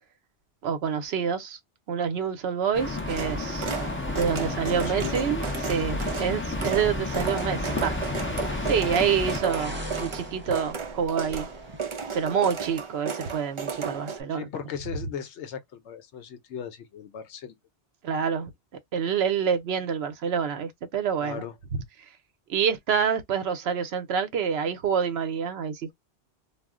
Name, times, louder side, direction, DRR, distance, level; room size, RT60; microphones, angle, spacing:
voice 1, 0.6-1.6 1.9-3.7 4.1-7.9 8.7-11.5 12.1-14.5 18.0-18.5 18.9-21.4 22.5-25.9, right 7 dB, 70° right, 0.9 m, -27 dB
sound 1, 2.7-9.4, left 2 dB, 15° left, 0.5 m, -31 dB
sound 2, 3.1-14.2, right 6 dB, 40° right, 0.4 m, -34 dB
voice 2, 4.6-5.2 9.3-9.6 14.3-17.6 21.2-21.5, left 7 dB, 85° left, 1.0 m, -38 dB
sound 3, 8.7-12.8, equal, 10° right, 0.8 m, -41 dB
2.4 x 2.0 x 3.5 m
omnidirectional pair, 1.1 m